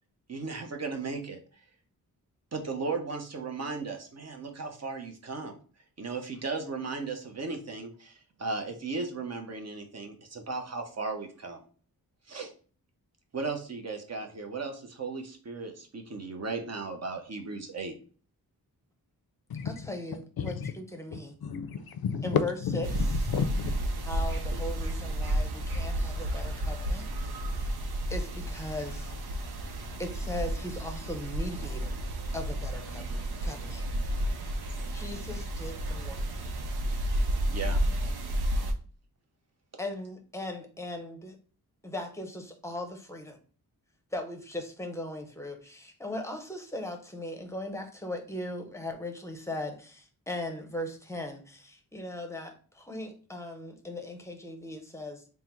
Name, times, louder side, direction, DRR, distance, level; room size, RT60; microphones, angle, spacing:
voice 1, 0.3-1.4 2.5-5.6 6.0-11.6 12.3-12.5 13.3-18.0 37.5-38.1 38.6-38.7, right 4 dB, 45° right, 0.7 m, -36 dB
voice 2, 19.6-21.4 22.2-23.3 24.1-27.1 27.5-29.1 30.0-32.0 32.3-33.8 34.7-36.5 39.8-41.4 41.8-43.4 44.1-55.2, left 1 dB, 10° left, 0.7 m, -39 dB
voice 3, 20.4-20.7 21.1-22.8 23.3-23.8, left 7 dB, 75° left, 0.5 m, -31 dB
sound 1, 22.8-38.7, right 1 dB, 85° right, 0.7 m, -31 dB
3.7 x 2.1 x 4.3 m
wide cardioid pair, 110°, 37 cm